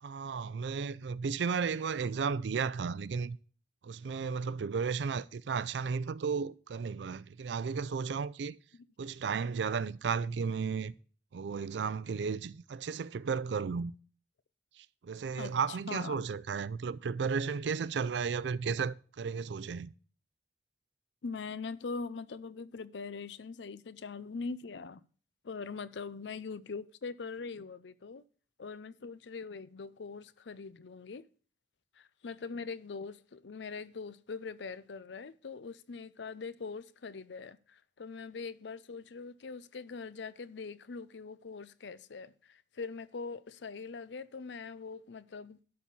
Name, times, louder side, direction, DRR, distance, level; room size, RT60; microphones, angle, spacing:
voice 1, 0.0-3.4 3.8-8.5 9.0-10.9 11.3-13.9 14.8-19.9, right 5 dB, 80° right, 0.4 m, -34 dB
voice 2, 15.4-16.2 21.2-25.0 25.4-28.2 28.6-31.3 32.0-45.6, left 4 dB, 85° left, 0.5 m, -42 dB
12.0 x 4.2 x 7.1 m
head